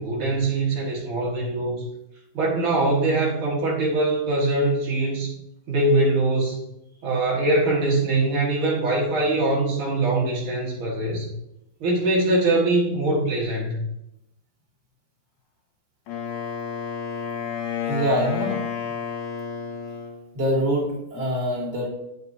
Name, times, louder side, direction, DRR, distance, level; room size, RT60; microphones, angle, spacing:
voice 1, 0.0-1.8 2.3-5.3 5.7-6.6 7.0-11.3 11.8-13.8, right 2 dB, 80° right, -4 dB, 1.1 m, -22 dB
Wind instrument woodwind instrument, 16.1-20.2, left 6 dB, 80° left, 3.9 m, -30 dB
voice 2, 17.7-18.6 20.4-21.9, equal, 45° right, -3 dB, 1.8 m, -25 dB
9.3 x 6.7 x 2.7 m, 0.84 s
omnidirectional pair, 4.7 m